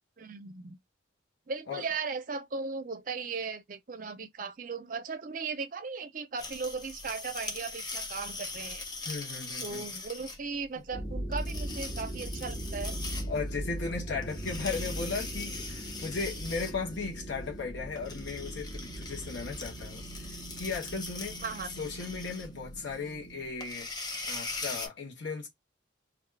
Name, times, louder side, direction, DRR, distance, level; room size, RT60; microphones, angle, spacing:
voice 1, 0.2-0.8 1.5-8.8 9.6-13.0 21.4-21.7, right 4 dB, 45° right, 0.5 m, -37 dB
sound 1, 6.4-24.9, left 3 dB, 20° left, 0.5 m, -41 dB
voice 2, 9.1-9.8 10.8-10.9 13.3-21.4 21.8-23.9 24.2-25.5, left 4 dB, 75° left, 0.9 m, -36 dB
sound 2, 10.9-23.5, right 1 dB, 60° left, 1.3 m, -40 dB
2.5 x 2.3 x 3.3 m
head